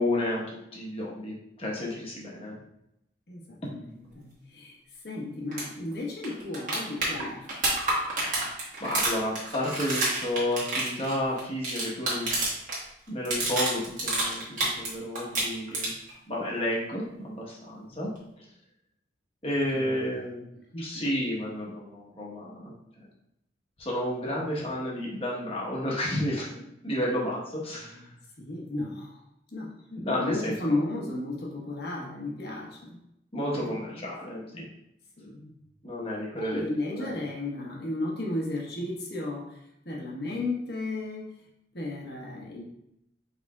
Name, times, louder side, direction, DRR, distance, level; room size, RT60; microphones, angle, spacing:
voice 1, 0.0-2.6 3.6-3.7 8.8-12.3 13.1-15.9 16.3-18.1 18.4-18.5 19.4-20.4 20.8-23.1 23.8-28.0 30.0-30.8 33.3-34.6 35.8-36.6 37.0-37.2, left 1 dB, 30° left, -4 dB, 1.2 m, -31 dB
voice 2, 3.3-4.8 5.0-7.4 17.9-18.0 19.7-20.0 20.7-21.1 27.7-29.2 29.5-33.0 33.5-34.7 35.2-35.5 36.4-41.5 41.7-42.6, left 2 dB, 60° left, -3 dB, 1.2 m, -34 dB
sound 1, 5.5-5.6 5.9-6.0 6.2-12.8 13.1-14.9 15.1-16.1 18.2-18.3, right 2 dB, 45° right, 1.5 m, -28 dB
4.9 x 4.4 x 2.4 m, 0.80 s
head